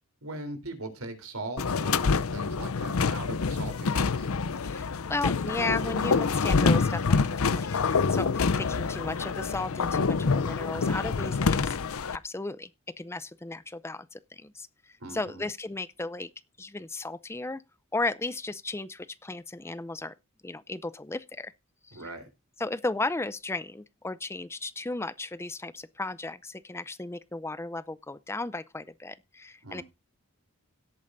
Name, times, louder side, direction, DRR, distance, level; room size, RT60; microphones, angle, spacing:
voice 1, 0.2-4.3 15.0-15.4 21.9-22.3 29.6-29.8, right 2 dB, 80° right, 3.6 m, -40 dB
sound 1, 1.6-12.2, left 4 dB, 75° left, 0.6 m, -26 dB
voice 2, 4.6-11.8 12.1-12.7 13.0-16.3 16.6-17.6 17.9-20.1 20.4-21.5 21.8-22.2 22.6-29.8, left 2 dB, 10° left, 0.5 m, -35 dB
17.0 x 8.7 x 2.6 m
head